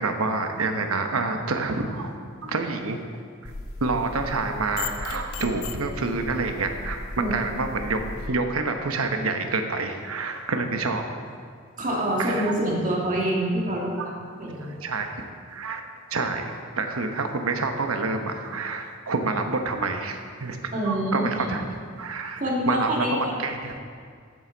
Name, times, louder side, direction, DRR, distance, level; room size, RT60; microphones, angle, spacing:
voice 1, 0.0-2.1 2.4-3.0 3.4-3.5 3.8-11.0 12.2-12.5 14.0-14.1 14.6-15.1 15.5-15.8 16.1-21.6 22.0-22.4 22.7-23.8, right 3 dB, 85° right, 5 dB, 1.0 m, -28 dB
sound 1, 3.4-8.3, left 3 dB, 80° left, 0.8 m, -36 dB
voice 2, 11.8-14.9 20.7-21.6 22.3-23.3, right 1 dB, 40° right, -3 dB, 2.1 m, -26 dB
14.5 x 7.9 x 4.0 m, 2.1 s
head